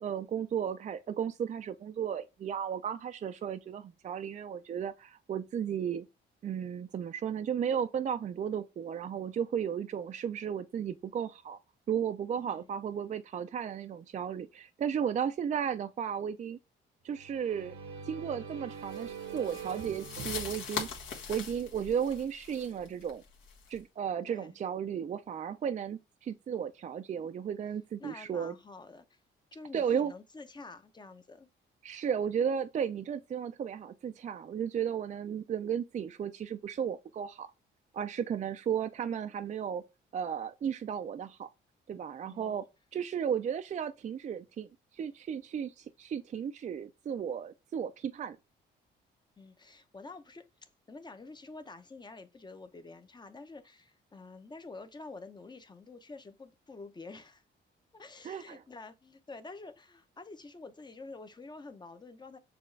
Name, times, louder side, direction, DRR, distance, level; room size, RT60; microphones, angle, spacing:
voice 1, 0.0-6.1 6.4-11.6 11.9-16.6 17.0-17.7 18.1-20.9 21.3-23.2 23.7-28.5 29.7-30.1 31.8-37.5 37.9-39.8 40.1-41.5 41.9-42.7 42.9-44.7 44.9-48.4 58.2-58.6, right 8 dB, 40° right, 0.4 m, -34 dB
sound 1, 17.1-21.8, right 6 dB, 90° right, 1.1 m, -44 dB
sound 2, 18.9-23.8, left 6 dB, 75° left, 1.4 m, -42 dB
voice 2, 24.2-24.6 28.0-29.2 29.5-31.5 42.3-42.6 49.4-50.5 50.9-57.4 57.9-62.4, left 3 dB, 20° left, 0.7 m, -48 dB
6.8 x 2.4 x 3.2 m
cardioid pair, 90°, 20 cm